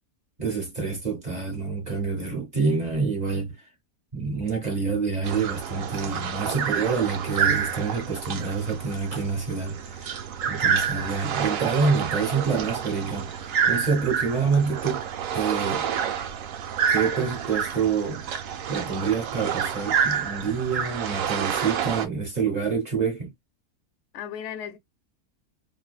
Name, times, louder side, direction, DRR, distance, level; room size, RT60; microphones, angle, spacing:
voice 1, 0.4-3.5 4.1-10.2 10.5-15.0 15.3-15.9 16.9-18.2 18.7-23.3, right 5 dB, 40° right, 0.7 m, -27 dB
sound 1, 5.2-22.1, right 7 dB, 70° right, 0.9 m, -28 dB
voice 2, 13.6-14.1 24.1-24.8, left 9 dB, 60° left, 0.9 m, -37 dB
2.7 x 2.2 x 2.2 m
omnidirectional pair, 1.6 m